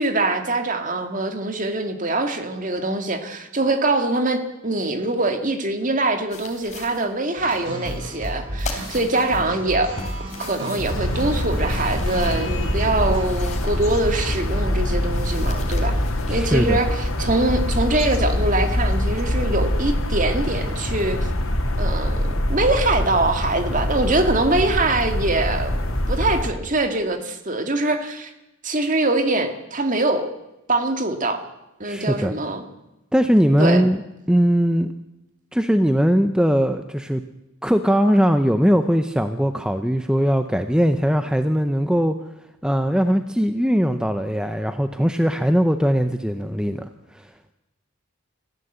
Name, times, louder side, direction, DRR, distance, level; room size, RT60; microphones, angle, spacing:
voice 1, 0.0-9.9 10.4-16.0 16.3-21.3 21.8-25.7 26.1-28.3 28.6-30.3 30.7-31.4 31.8-32.6 33.6-33.8, right 2 dB, 35° right, 7 dB, 2.1 m, -23 dB
sound 1, 6.3-7.1 7.4-7.5 7.8-8.4 8.6-9.5 10.0-12.5 12.9-14.7 15.1-17.2, left 3 dB, 35° left, 3.3 m, -39 dB
sound 2, 7.4-13.2, right 1 dB, 55° right, 7.7 m, -31 dB
sound 3, 10.8-26.5, left 1 dB, 75° left, 2.9 m, -24 dB
voice 2, 16.3-16.8 31.8-32.3 33.1-34.0 34.3-34.9 35.5-37.2 37.6-42.1 42.6-47.3, equal, 5° right, 8 dB, 0.7 m, -20 dB
24.5 x 15.0 x 8.0 m, 0.99 s
head